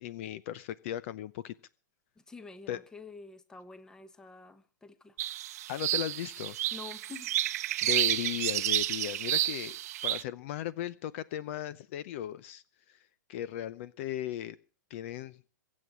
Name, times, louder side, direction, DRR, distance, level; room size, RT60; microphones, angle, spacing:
voice 1, 0.0-1.5 2.7-2.8 5.7-6.6 7.8-9.8 10.0-13.0 13.3-14.6 14.9-15.4, left 12 dB, 40° left, 0.7 m, -37 dB
voice 2, 2.2-5.2 6.7-7.3, left 4 dB, 5° left, 1.1 m, -48 dB
sound 1, 5.2-10.2, right 14 dB, 50° right, 0.8 m, -30 dB
23.0 x 8.4 x 6.1 m
hypercardioid pair, 160°, 10 cm